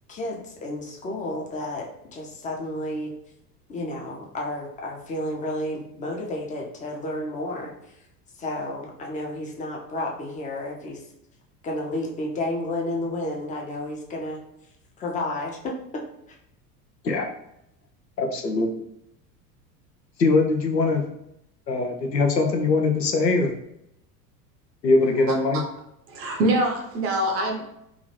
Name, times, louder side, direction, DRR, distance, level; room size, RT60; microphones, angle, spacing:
voice 1, 0.1-3.1 3.7-8.0 8.4-11.0 11.6-14.4 15.0-16.4, left 1 dB, 15° left, -1 dB, 0.5 m, -31 dB
voice 2, 18.2-18.7 20.2-21.0 21.7-23.5 24.8-25.6, left 3 dB, 85° left, 3 dB, 0.6 m, -21 dB
voice 3, 26.1-27.7, right 1 dB, 30° right, 2 dB, 0.6 m, -24 dB
2.8 x 2.4 x 3.1 m, 0.81 s
figure-of-eight pair, 75°, 49 cm